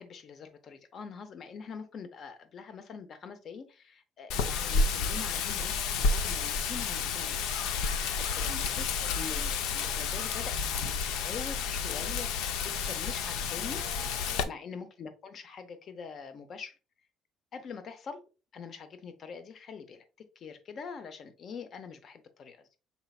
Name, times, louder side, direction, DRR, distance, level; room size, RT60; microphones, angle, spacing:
voice 1, 0.0-13.8 14.4-16.8 17.5-18.2 18.5-22.7, left 5 dB, 35° left, 0.6 m, -44 dB
Wind, 4.3-14.4, left 5 dB, 90° left, 0.5 m, -31 dB
5.5 x 4.0 x 2.3 m
cardioid pair, 170°, 0 cm